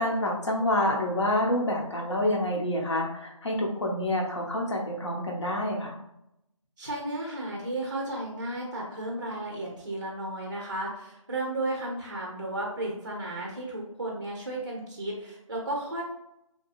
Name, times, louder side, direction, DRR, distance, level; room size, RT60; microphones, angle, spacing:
voice 1, 0.0-5.9, left 1 dB, 55° left, -1 dB, 0.8 m, -27 dB
voice 2, 6.8-16.0, right 1 dB, 35° right, -2 dB, 0.5 m, -34 dB
2.8 x 2.3 x 2.5 m, 0.83 s
figure-of-eight pair, 170°, 18 cm